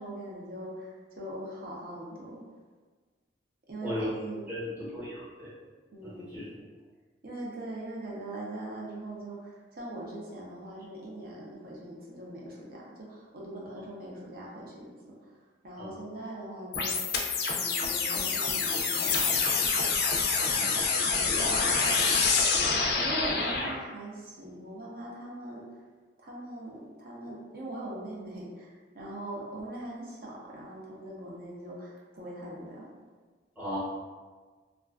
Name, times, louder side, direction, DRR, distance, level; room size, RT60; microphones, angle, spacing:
voice 1, 0.0-2.4 3.7-4.5 5.9-6.5 7.2-15.3 15.6-17.0 17.5-19.7 21.1-21.6 23.0-25.6 26.2-32.9, right 1 dB, 55° right, -4 dB, 0.6 m, -41 dB
voice 2, 4.5-5.5 6.0-6.5 15.8-15.9 20.5-20.7 33.6-33.8, left 1 dB, 10° right, -12 dB, 0.9 m, -37 dB
sound 1, 16.7-23.7, left 4 dB, 60° left, 0.3 m, -27 dB
2.4 x 2.3 x 2.3 m, 1.4 s
head